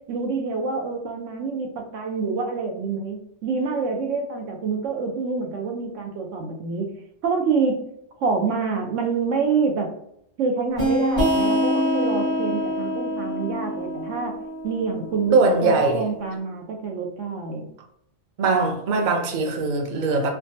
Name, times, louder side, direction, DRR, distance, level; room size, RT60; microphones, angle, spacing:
voice 1, 0.1-7.0 7.2-7.8 8.2-9.9 10.4-14.3 14.6-15.3 15.6-17.7, right 4 dB, 85° right, 1.0 m, -26 dB
sound 1, 10.8-16.1, equal, 35° right, 1.0 m, -25 dB
voice 2, 15.3-16.0 18.4-20.3, right 3 dB, 55° right, 0.6 m, -21 dB
3.5 x 2.2 x 2.6 m
omnidirectional pair, 1.2 m